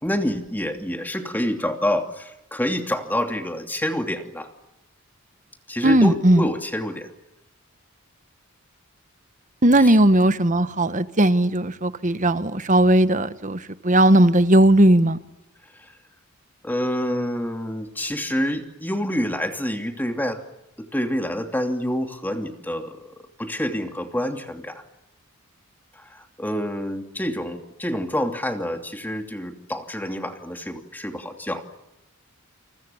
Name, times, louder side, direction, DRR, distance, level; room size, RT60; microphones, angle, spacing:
voice 1, 0.0-4.5 5.7-7.1 9.8-10.0 15.8-15.9 16.6-20.4 20.8-24.8 26.0-31.8, equal, 10° left, 5 dB, 2.7 m, -27 dB
voice 2, 5.8-6.4 9.6-15.2, right 1 dB, 35° right, 12 dB, 1.2 m, -17 dB
29.0 x 29.0 x 7.1 m, 0.89 s
head